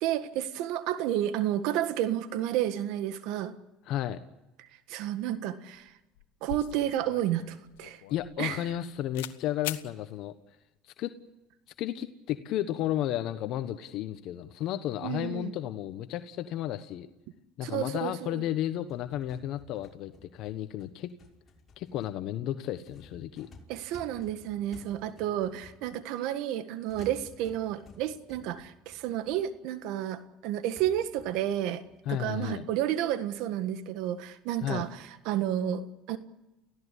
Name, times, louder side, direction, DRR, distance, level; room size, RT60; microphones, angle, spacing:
voice 1, 0.0-3.5 4.6-5.9 6.4-8.0 8.4-8.6 15.0-15.5 17.6-18.4 23.7-31.8 32.1-36.2, right 11 dB, 70° right, 11 dB, 1.6 m, -31 dB
voice 2, 3.9-4.2 8.1-10.3 10.8-11.1 11.8-17.1 17.6-21.1 21.8-23.5 32.0-32.7 34.6-34.8, left 12 dB, 65° left, 10 dB, 1.2 m, -33 dB
sound 1, 5.8-5.9 6.2-8.8 9.1-9.4 9.6-9.9, left 14 dB, 90° left, 1.2 m, -41 dB
sound 2, 18.7-26.2 26.9-29.8 30.2-30.3 30.7-33.6 34.0-34.1 34.8-35.0, left 2 dB, 35° left, 6.0 m, -55 dB
30.0 x 16.5 x 8.5 m, 1.0 s
supercardioid pair, 95°, 0 cm